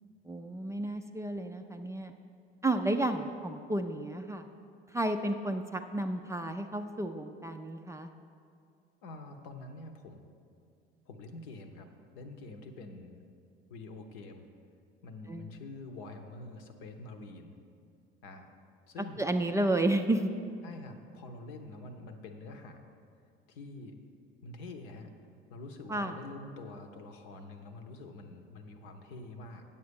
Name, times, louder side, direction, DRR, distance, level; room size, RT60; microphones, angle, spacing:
voice 1, 0.3-2.1 2.6-4.5 4.9-8.1 15.3-15.5 19.2-20.3 25.9-26.1, right 1 dB, 10° right, 6 dB, 0.4 m, -32 dB
voice 2, 9.0-10.3 11.1-11.9 12.1-13.2 13.7-14.5 15.0-17.5 18.2-18.5 18.9-19.2 20.6-22.8 23.5-24.0 24.4-25.1 25.5-29.6, left 2 dB, 65° left, 6 dB, 0.9 m, -46 dB
9.3 x 7.0 x 5.2 m, 2.4 s
figure-of-eight pair, 55°, 29 cm